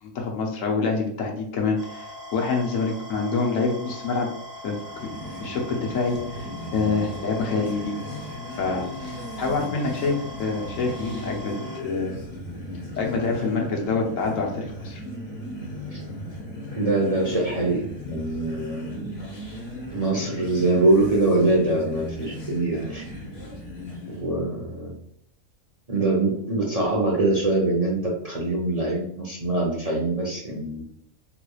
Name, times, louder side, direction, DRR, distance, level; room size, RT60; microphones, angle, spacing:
voice 1, 0.0-4.3 4.6-4.8 5.0-5.1 5.4-8.0 8.6-11.5 11.8-12.1 13.0-15.0, left 4 dB, 75° left, 0 dB, 1.2 m, -26 dB
sound 1, 1.8-11.8, left 1 dB, 75° right, 1.2 m, -41 dB
sound 2, 4.8-24.3, left 1 dB, 50° left, 1.2 m, -37 dB
voice 2, 16.8-19.1 19.9-23.0 24.2-24.9 25.9-30.8, right 2 dB, 40° right, -3 dB, 0.6 m, -23 dB
3.9 x 3.2 x 2.3 m, 0.69 s
omnidirectional pair, 1.4 m